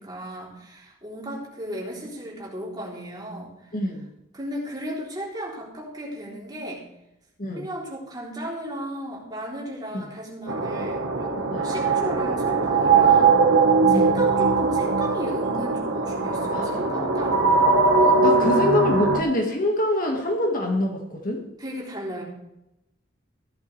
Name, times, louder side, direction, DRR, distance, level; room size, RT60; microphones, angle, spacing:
voice 1, 0.0-3.5 4.3-6.8 7.5-13.4 13.8-17.5 18.0-18.6 21.6-22.2, equal, 20° right, -4 dB, 3.5 m, -35 dB
voice 2, 3.7-4.1 7.4-7.7 9.9-10.1 11.5-11.7 13.9-14.2 16.5-17.2 18.2-21.4, left 1 dB, 45° left, 2 dB, 1.8 m, -25 dB
sound 1, 10.5-19.2, right 4 dB, 85° right, 1.4 m, -20 dB
15.0 x 11.0 x 3.4 m, 0.87 s
head